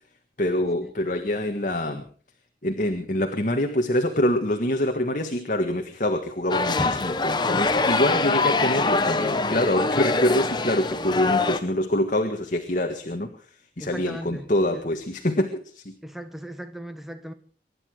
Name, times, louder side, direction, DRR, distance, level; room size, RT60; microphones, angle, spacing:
voice 1, 0.4-2.0 2.6-13.3 13.8-15.9, left 1 dB, 45° left, 4 dB, 1.7 m, -25 dB
sound 1, 6.5-11.6, left 3 dB, 25° left, 1.1 m, -24 dB
voice 2, 13.8-14.4 14.7-14.8 16.0-17.3, equal, ahead, 8 dB, 1.4 m, -37 dB
24.0 x 11.5 x 5.0 m, 0.43 s
head